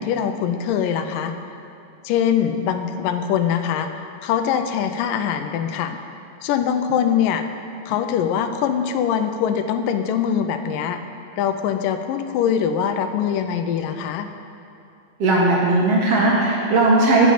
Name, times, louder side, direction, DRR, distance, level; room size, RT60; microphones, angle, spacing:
voice 1, 0.0-1.4 2.0-6.0 6.4-7.4 7.9-11.0 11.4-14.3, left 8 dB, 90° left, 8 dB, 2.2 m, -23 dB
voice 2, 15.2-17.3, right 2 dB, 55° right, -4 dB, 2.0 m, -17 dB
9.2 x 6.3 x 8.5 m, 2.6 s
omnidirectional pair, 3.9 m